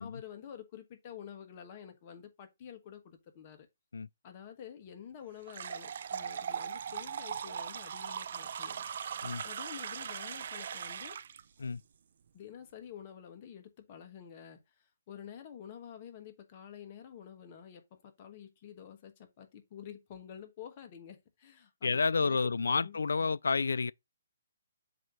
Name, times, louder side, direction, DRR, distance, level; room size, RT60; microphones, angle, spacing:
voice 1, 0.0-3.7 4.2-8.8 9.4-11.2 12.3-22.5 22.8-23.3, left 9 dB, 30° left, 1.2 m, -49 dB
sound 1, 5.5-11.4, right 7 dB, 50° right, 0.5 m, -39 dB
voice 2, 21.8-23.9, left 4 dB, 85° left, 0.3 m, -30 dB
7.5 x 2.8 x 4.9 m
hypercardioid pair, 160°, 0 cm